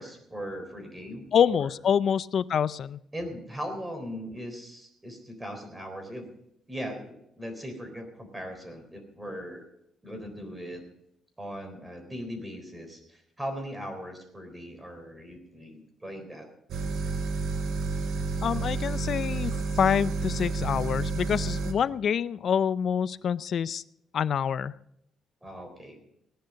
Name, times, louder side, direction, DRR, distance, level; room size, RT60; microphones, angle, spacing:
voice 1, 0.0-1.7 3.1-6.3 6.7-9.6 10.0-10.8 11.4-16.5 19.4-19.5 25.4-26.0, equal, 10° right, 6 dB, 3.8 m, -39 dB
voice 2, 1.3-3.0 18.4-23.8 24.1-24.7, left 8 dB, 55° left, 17 dB, 0.5 m, -26 dB
sound 1, 16.7-21.7, right 4 dB, 70° right, 1.8 m, -30 dB
18.0 x 10.5 x 5.3 m, 0.77 s
cardioid pair, 120°, 0 cm